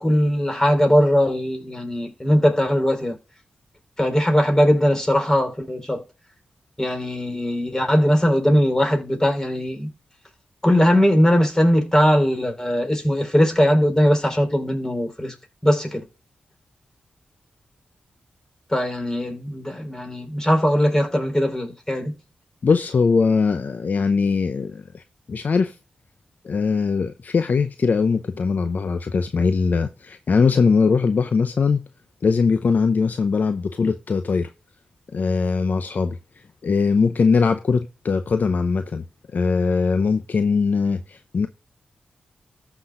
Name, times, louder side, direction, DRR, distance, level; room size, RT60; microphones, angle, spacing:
voice 1, 0.0-3.2 4.0-6.0 6.8-9.9 10.6-15.3 15.6-16.1 18.7-22.2, equal, 20° left, 4.4 m, -20 dB
voice 2, 22.6-25.0 25.3-25.8 26.4-31.8 32.2-34.5 35.1-36.2 36.6-39.0 39.3-41.5, left 5 dB, 60° left, 0.7 m, -21 dB
14.0 x 6.0 x 2.5 m
cardioid pair, 45°, 3 cm